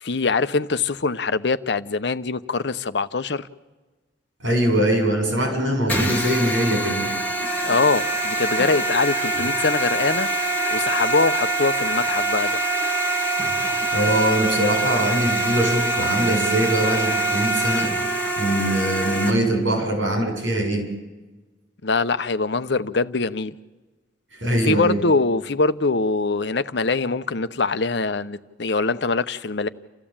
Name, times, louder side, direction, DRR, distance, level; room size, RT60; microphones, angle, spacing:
voice 1, 0.0-3.5 7.6-10.3 10.7-12.6 21.8-23.5 24.7-29.7, left 3 dB, 65° left, 0.8 m, -23 dB
voice 2, 4.4-7.1 13.9-17.9 18.4-20.9 24.4-25.0, right 1 dB, 85° right, 7.1 m, -22 dB
sound 1, 5.9-19.3, right 2 dB, 10° left, 3.3 m, -24 dB
29.5 x 14.5 x 8.8 m
head